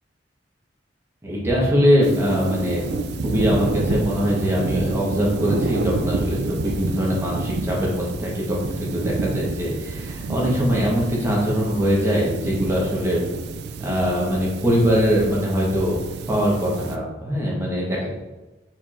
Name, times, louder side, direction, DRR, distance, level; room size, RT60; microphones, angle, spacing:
voice 1, 1.2-2.9 3.2-13.3 13.8-16.0 16.3-18.1, equal, 15° right, -4 dB, 1.1 m, -22 dB
sound 1, 2.0-17.0, right 3 dB, 65° right, 0.3 m, -29 dB
4.5 x 4.3 x 2.5 m, 1.1 s
head